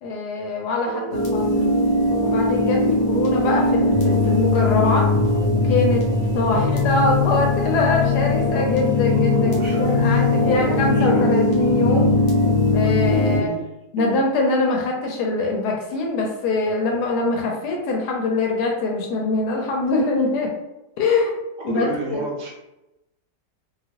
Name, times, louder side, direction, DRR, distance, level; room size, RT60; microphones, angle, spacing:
voice 1, 0.0-0.9 1.3-1.7 2.2-5.1 5.5-6.1 6.3-9.5 9.8-12.1 12.7-13.5 13.9-20.5 21.0-21.3 21.6-21.9 22.1-22.2, left 3 dB, 75° left, 0 dB, 1.1 m, -23 dB
voice 2, 0.8-1.2 6.5-6.8 9.3-11.4 13.2-13.6 14.0-14.2 21.6-22.5, right 3 dB, 70° right, -2 dB, 1.3 m, -31 dB
sound 1, 1.1-13.4, left 2 dB, 45° left, 0.7 m, -20 dB
2.9 x 2.7 x 2.8 m, 0.92 s
omnidirectional pair, 1.9 m